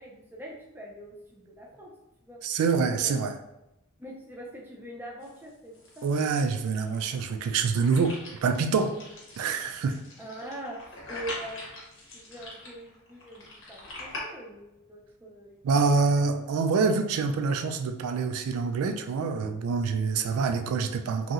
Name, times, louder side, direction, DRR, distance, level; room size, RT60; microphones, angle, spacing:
voice 1, 0.0-1.9 2.2-2.4 3.0-3.2 4.0-6.1 6.6-6.7 10.2-11.8 12.1-15.6 16.1-16.3, right 1 dB, 10° right, -3 dB, 0.4 m, -43 dB
voice 2, 2.4-3.4 6.0-9.0 9.4-10.0 15.6-21.3, right 4 dB, 70° right, 7 dB, 0.3 m, -26 dB
sound 1, 5.2-14.2, left 2 dB, 60° left, 0.8 m, -44 dB
2.8 x 2.8 x 2.4 m, 0.91 s
head